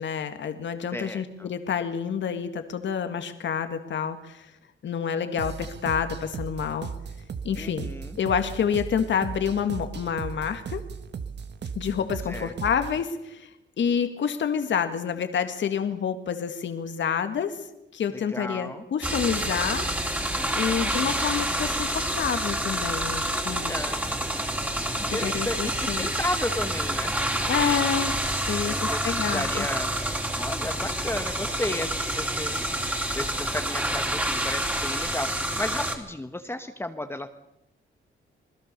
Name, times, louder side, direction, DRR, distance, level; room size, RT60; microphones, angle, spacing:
voice 1, 0.0-4.5 4.8-6.9 7.4-7.9 8.2-10.8 11.8-13.5 13.8-17.7 17.9-19.9 20.5-23.7 25.1-26.1 27.5-28.1 28.4-29.7, left 7 dB, 65° left, 8 dB, 1.9 m, -28 dB
voice 2, 0.9-1.5 7.6-8.2 12.3-12.5 18.3-18.8 20.4-21.0 23.3-24.1 25.1-27.1 28.6-29.9 30.3-32.6 33.1-37.3, left 1 dB, 10° left, 7 dB, 1.1 m, -34 dB
sound 1, 5.4-13.0, right 6 dB, 55° right, 1.5 m, -37 dB
sound 2, 19.0-36.0, right 1 dB, 10° right, 3.3 m, -28 dB
27.0 x 20.5 x 6.8 m, 0.86 s
wide cardioid pair, 135°, 21 cm